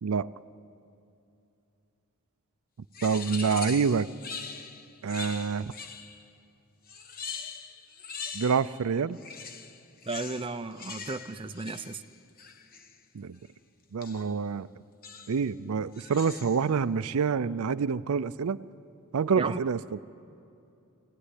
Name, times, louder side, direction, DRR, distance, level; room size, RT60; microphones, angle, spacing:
sound 1, 2.9-6.3 6.9-8.9 9.1-13.0 14.0-14.4 15.0-15.5 15.9-16.7, left 6 dB, 40° left, 1.1 m, -42 dB
voice 1, 3.0-4.1 5.0-5.7 8.3-9.2 13.1-13.4 13.9-14.7 15.3-18.6 19.1-20.0, right 5 dB, 75° right, 15 dB, 0.5 m, -27 dB
voice 2, 10.1-12.0 19.4-19.6, right 3 dB, 25° right, 8 dB, 0.6 m, -34 dB
26.0 x 17.0 x 9.9 m, 2.7 s
head